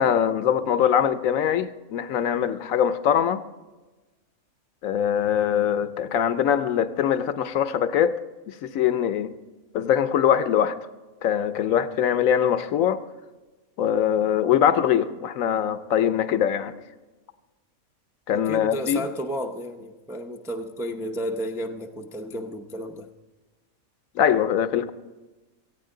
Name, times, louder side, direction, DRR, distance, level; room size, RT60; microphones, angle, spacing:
voice 1, 0.0-3.4 4.8-8.2 8.5-9.3 9.7-10.8 11.2-13.0 13.8-16.7 18.3-19.1 24.2-24.9, left 9 dB, 75° left, 12 dB, 1.0 m, -22 dB
voice 2, 18.3-23.1, equal, 5° right, 3 dB, 0.3 m, -32 dB
17.5 x 15.0 x 3.8 m, 1.2 s
omnidirectional pair, 1.5 m